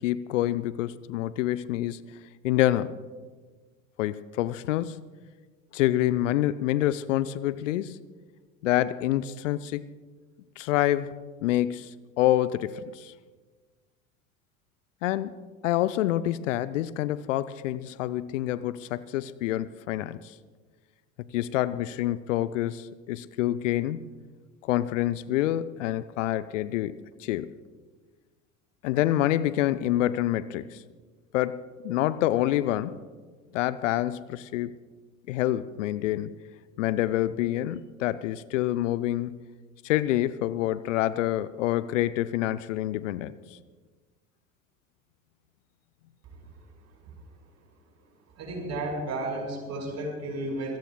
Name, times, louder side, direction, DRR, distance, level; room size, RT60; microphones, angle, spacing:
voice 1, 0.0-2.0 2.4-3.0 4.0-5.0 5.7-8.0 8.6-9.8 10.6-13.1 15.0-15.4 15.6-20.3 21.3-24.0 24.6-27.5 28.8-30.8 31.3-33.0 33.5-34.7 35.3-36.4 36.8-39.4 39.8-43.3, left 14 dB, 65° left, 0.6 m, -27 dB
voice 2, 48.4-50.8, right 2 dB, 40° right, 5.2 m, -32 dB
25.5 x 17.0 x 2.3 m
figure-of-eight pair, 65°, 41 cm